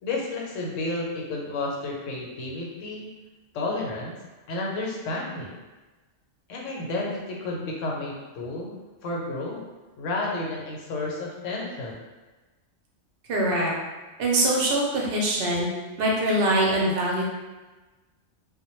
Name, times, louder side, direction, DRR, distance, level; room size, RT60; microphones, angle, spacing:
voice 1, 0.0-3.1 3.5-4.2 4.5-5.6 6.5-8.7 9.0-9.6 10.0-11.9, left 2 dB, 80° left, -2 dB, 0.9 m, -31 dB
voice 2, 13.3-13.7 14.2-15.7 16.0-17.2, right 1 dB, 60° right, -3 dB, 0.7 m, -23 dB
2.1 x 2.0 x 3.0 m, 1.2 s
omnidirectional pair, 1.3 m